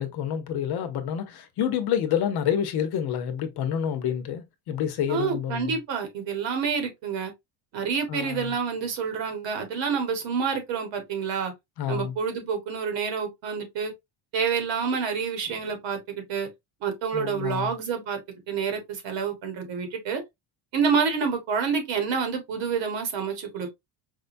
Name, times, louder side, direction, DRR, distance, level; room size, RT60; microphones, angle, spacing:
voice 1, 0.0-5.8 8.1-8.5 11.8-12.1 17.1-17.7, left 9 dB, 55° left, 0.8 m, -28 dB
voice 2, 5.1-7.3 7.7-11.5 11.9-13.9 14.3-16.5 16.8-20.2 20.7-23.7, right 6 dB, 65° right, 1.4 m, -28 dB
5.0 x 2.2 x 2.5 m
cardioid pair, 135°, 47 cm